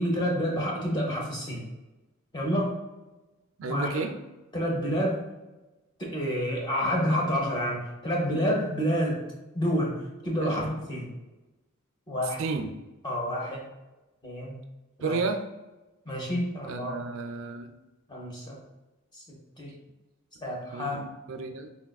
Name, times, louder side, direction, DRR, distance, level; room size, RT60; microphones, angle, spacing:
voice 1, 0.0-1.6 2.3-2.7 3.7-3.9 4.5-5.2 6.0-9.2 9.5-9.9 10.2-11.1 12.1-12.5 13.0-13.6 14.2-14.6 15.0-15.2 16.1-17.0 18.1-18.6 19.1-19.2 19.6-19.7 20.4-21.0, equal, 20° left, -3 dB, 0.7 m, -28 dB
voice 2, 3.6-4.2 10.4-10.6 12.4-12.8 15.0-15.4 16.7-17.7 20.7-21.7, right 4 dB, 65° right, 6 dB, 0.4 m, -32 dB
3.9 x 2.4 x 2.3 m, 1.1 s
head